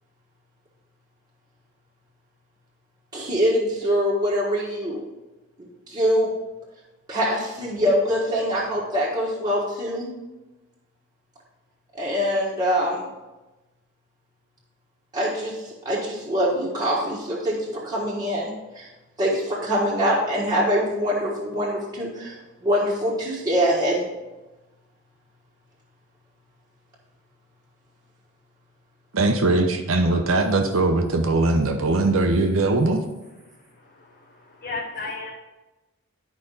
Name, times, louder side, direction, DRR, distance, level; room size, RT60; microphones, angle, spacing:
voice 1, 3.1-5.0 5.6-6.3 7.1-10.1 11.9-13.1 15.1-18.9 19.2-24.0, equal, 20° right, -6 dB, 1.4 m, -24 dB
voice 2, 29.1-33.0, right 2 dB, 70° right, 5 dB, 0.8 m, -20 dB
voice 3, 33.4-35.3, left 3 dB, 45° left, 0 dB, 0.7 m, -35 dB
11.0 x 5.0 x 4.0 m, 1.1 s
head